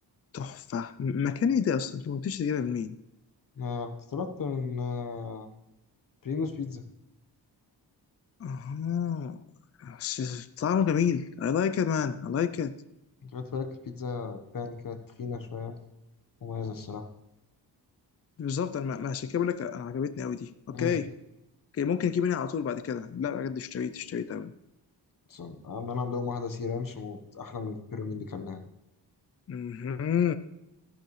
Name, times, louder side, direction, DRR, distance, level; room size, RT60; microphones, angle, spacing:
voice 1, 0.3-3.0 8.4-9.4 9.8-12.8 18.4-21.1 21.7-24.5 29.5-30.3, left 7 dB, 35° left, 13 dB, 0.5 m, -29 dB
voice 2, 3.6-5.5 6.2-6.8 13.2-15.8 16.4-17.1 20.7-20.9 25.3-28.7, left 5 dB, 50° left, 7 dB, 1.2 m, -35 dB
13.5 x 10.5 x 3.2 m, 0.90 s
wide cardioid pair, 120°, 41 cm